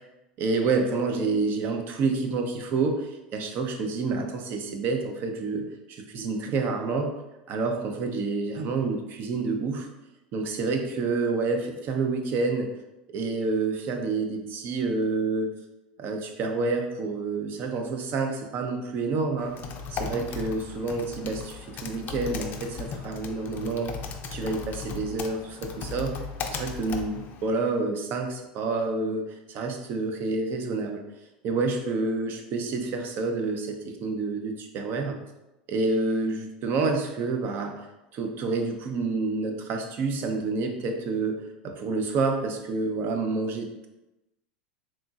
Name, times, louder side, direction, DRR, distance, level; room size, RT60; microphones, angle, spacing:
voice 1, 0.4-7.1 7.5-9.9 10.3-12.7 13.1-15.5 16.0-19.5 19.9-23.9 24.3-31.0 31.4-35.2 35.7-37.9 38.1-43.9, right 3 dB, 45° right, 4 dB, 0.6 m, -28 dB
Typing, 19.4-27.6, left 5 dB, 40° left, 0.4 m, -37 dB
3.7 x 3.0 x 2.4 m, 0.97 s
hypercardioid pair, 95°, 5 cm